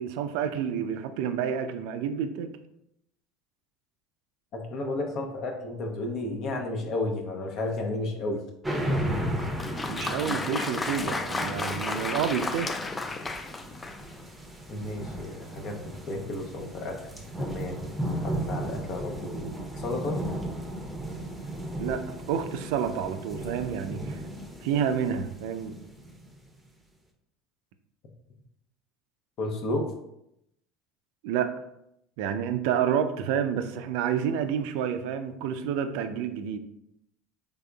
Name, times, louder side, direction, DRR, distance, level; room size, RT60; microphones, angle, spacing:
voice 1, 0.0-2.5 9.9-12.8 21.8-24.2 24.6-25.7 31.2-31.5 32.2-36.6, right 8 dB, 70° right, 9 dB, 0.3 m, -29 dB
voice 2, 4.5-8.4 14.7-15.8 16.1-17.0 17.4-17.9 18.2-19.5 19.8-20.2 29.4-29.9, left 2 dB, 55° left, 2 dB, 0.8 m, -32 dB
sound 1, 8.6-26.5, right 1 dB, 10° right, 0.7 m, -35 dB
Applause, 9.3-14.2, left 3 dB, 20° left, 0.4 m, -33 dB
3.7 x 3.4 x 2.3 m, 0.79 s
hypercardioid pair, 85°, 0 cm